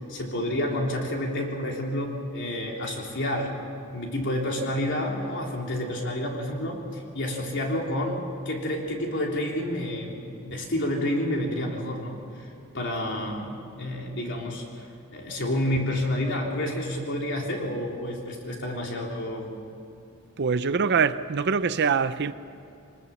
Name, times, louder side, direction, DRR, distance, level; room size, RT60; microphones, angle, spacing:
voice 1, 0.0-3.6 3.9-12.5 12.7-19.5, left 1 dB, 55° left, 3.6 m, -29 dB
voice 2, 20.4-22.3, right 5 dB, 50° right, 0.6 m, -24 dB
24.5 x 19.5 x 7.2 m
head